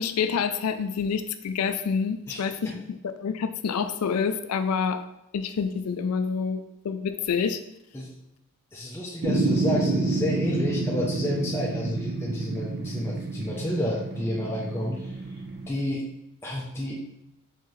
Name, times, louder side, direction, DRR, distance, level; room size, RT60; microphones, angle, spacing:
voice 1, 0.0-2.8 3.2-5.0 5.3-7.6, left 6 dB, 85° left, 10 dB, 0.4 m, -27 dB
voice 2, 2.3-2.7 7.9-8.1 8.7-15.1 15.7-16.0 16.4-17.0, left 1 dB, 10° left, -4 dB, 0.5 m, -30 dB
sound 1, 9.2-15.7, right 3 dB, 45° right, 0.6 m, -29 dB
4.6 x 3.6 x 3.1 m, 0.88 s
head